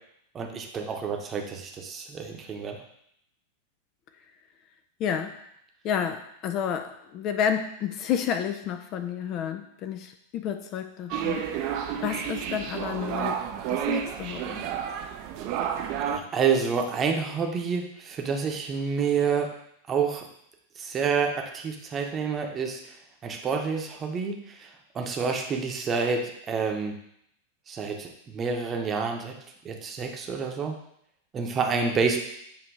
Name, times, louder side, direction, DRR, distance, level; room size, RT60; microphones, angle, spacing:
voice 1, 0.3-2.8 16.1-19.5 19.9-20.3 20.8-22.9 23.2-24.7 24.9-27.0 27.7-29.3 29.6-30.7 31.3-32.2, right 5 dB, 25° right, 2 dB, 0.9 m, -28 dB
voice 2, 5.0-5.5 5.8-11.8 12.0-14.6, left 8 dB, 35° left, 8 dB, 0.4 m, -31 dB
sound 1, 11.1-16.2, right 9 dB, 40° right, 0.5 m, -30 dB
7.3 x 2.8 x 4.7 m, 0.74 s
figure-of-eight pair, 90°, 0 cm